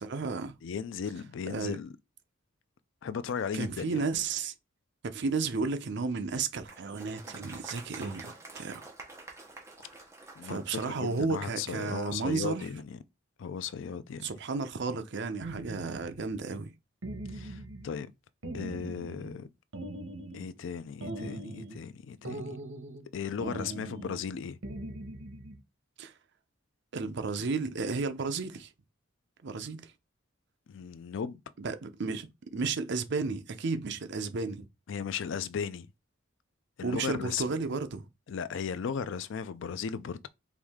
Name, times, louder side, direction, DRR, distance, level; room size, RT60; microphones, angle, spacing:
voice 1, 0.0-0.5 1.5-1.8 3.5-4.5 5.0-8.9 10.4-12.7 14.2-16.7 26.0-26.1 26.9-28.7 29.4-29.9 31.6-34.7 36.8-38.1, right 4 dB, 60° right, 0.6 m, -33 dB
voice 2, 0.6-1.9 3.0-4.0 10.4-13.0 13.4-14.2 17.3-18.1 18.5-19.5 20.3-22.5 23.1-24.6 30.7-31.4 34.9-35.9 36.8-37.4 38.3-40.3, left 6 dB, 65° left, 0.4 m, -36 dB
Applause, 6.7-12.2, right 2 dB, 15° right, 1.0 m, -48 dB
sound 1, 15.4-16.3 17.0-18.0 18.4-19.4 19.7-20.5 21.0-21.8 22.2-23.1 23.4-24.3 24.6-25.6, right 1 dB, 85° right, 0.9 m, -41 dB
4.6 x 2.6 x 3.5 m
head